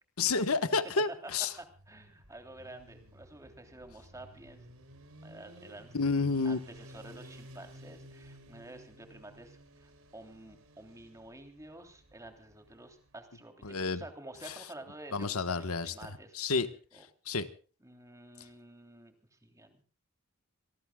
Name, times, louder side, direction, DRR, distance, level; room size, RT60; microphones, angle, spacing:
voice 1, 0.2-1.5 5.9-6.6 13.6-14.0 15.1-15.9 16.4-16.7 17.3-17.5, left 4 dB, 85° left, 11 dB, 1.3 m, -29 dB
Motorcycle, 1.5-13.2, equal, 80° right, 4.1 m, -55 dB
voice 2, 1.6-4.7 5.2-5.9 6.4-16.6 16.9-17.1 17.8-19.8, right 1 dB, 15° right, 5 dB, 3.2 m, -50 dB
27.5 x 19.0 x 2.3 m, 0.39 s
head